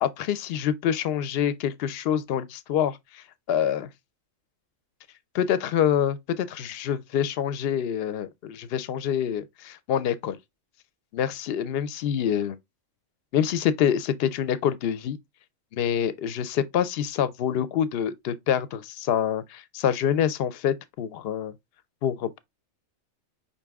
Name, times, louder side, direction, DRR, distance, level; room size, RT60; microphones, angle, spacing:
voice 1, 0.0-3.9 5.3-10.4 11.1-12.6 13.3-15.2 15.7-21.5 22.0-22.4, left 9 dB, 60° left, 0.7 m, -26 dB
5.4 x 2.8 x 3.4 m
omnidirectional pair, 1.3 m